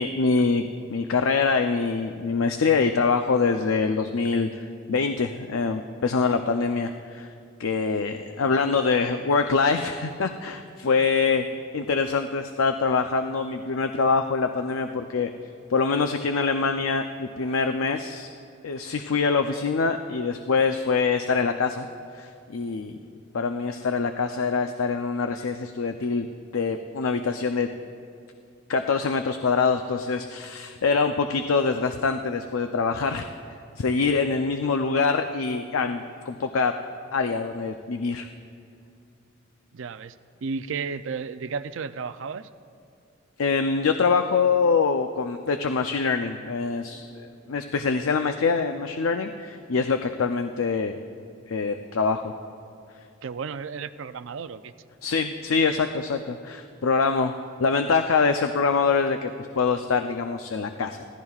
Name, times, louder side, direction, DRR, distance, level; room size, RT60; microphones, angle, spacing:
voice 1, 0.0-4.5 4.9-7.3 7.6-11.5 11.7-15.3 15.7-18.3 18.6-21.9 22.1-23.0 23.3-26.3 26.5-27.7 28.7-33.3 33.8-36.7 37.1-38.3 43.4-51.0 51.5-52.3 55.0-57.3 57.6-61.0, left 4 dB, 85° left, 6 dB, 0.5 m, -24 dB
voice 2, 39.7-40.1 40.4-42.5 53.2-54.7, right 5 dB, 65° right, 12 dB, 0.4 m, -33 dB
24.5 x 16.0 x 2.4 m, 2.5 s
head